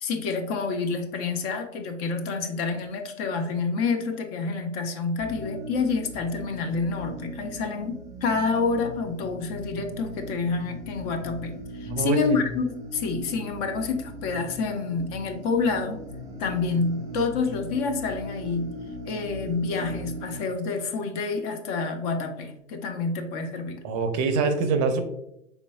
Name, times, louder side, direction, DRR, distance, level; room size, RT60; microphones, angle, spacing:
voice 1, 0.0-16.0 16.4-18.8 19.0-23.8, left 4 dB, 30° left, 5 dB, 0.5 m, -28 dB
sound 1, 5.2-20.3, equal, 10° right, 0.9 m, -39 dB
voice 2, 11.9-12.4 23.8-25.0, right 4 dB, 35° right, 8 dB, 0.6 m, -24 dB
3.9 x 3.4 x 2.2 m, 0.83 s
hypercardioid pair, 110°, 39 cm